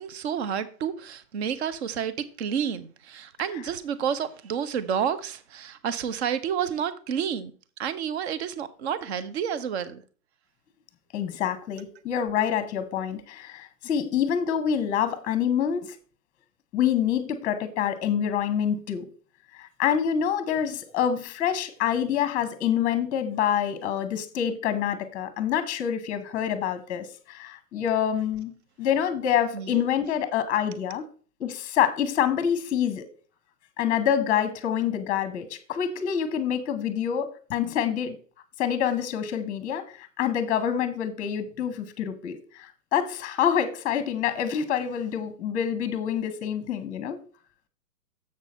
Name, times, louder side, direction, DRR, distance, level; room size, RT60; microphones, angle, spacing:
voice 1, 0.0-7.5 7.8-10.0 29.5-29.8, right 8 dB, 40° right, 0.8 m, -30 dB
voice 2, 11.1-16.0 16.7-19.1 19.6-28.5 28.8-31.1 31.4-33.1 33.8-38.2 38.6-47.2, left 9 dB, 15° left, 1.0 m, -26 dB
7.4 x 6.3 x 4.2 m
figure-of-eight pair, 120°, 48 cm